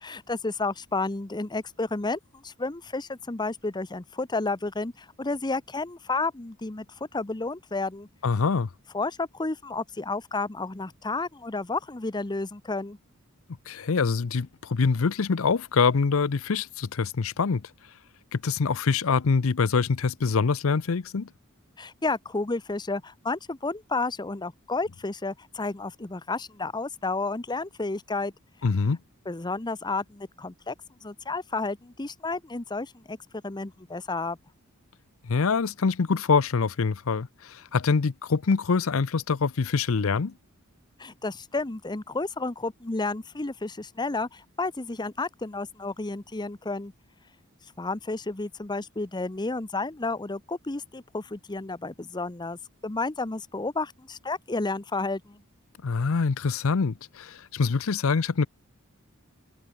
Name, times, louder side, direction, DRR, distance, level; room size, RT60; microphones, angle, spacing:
voice 1, 0.0-8.1 8.9-13.0 21.8-28.3 29.3-30.7 31.0-33.2 33.4-34.4 41.0-46.9 47.8-55.4, left 3 dB, 20° left, 0.8 m, -31 dB
voice 2, 8.2-8.7 13.7-17.7 18.3-21.3 28.6-29.0 35.2-40.3 55.8-58.5, left 5 dB, 65° left, 0.6 m, -25 dB
head